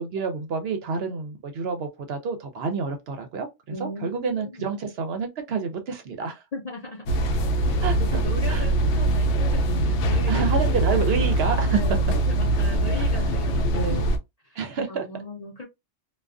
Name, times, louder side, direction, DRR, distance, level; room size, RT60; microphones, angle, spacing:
voice 1, 0.0-6.4 7.8-8.2 8.5-8.7 10.3-12.0 13.0-13.4 13.7-14.1 14.5-15.0, right 5 dB, 65° right, 0.7 m, -29 dB
voice 2, 3.7-4.8 6.5-7.2 7.6-11.1 11.7-13.8 14.4-14.6 14.9-15.6, left 2 dB, 45° left, 0.5 m, -38 dB
sound 1, 7.1-14.2, right 1 dB, 70° left, 0.8 m, -22 dB
2.4 x 2.2 x 2.3 m
omnidirectional pair, 1.3 m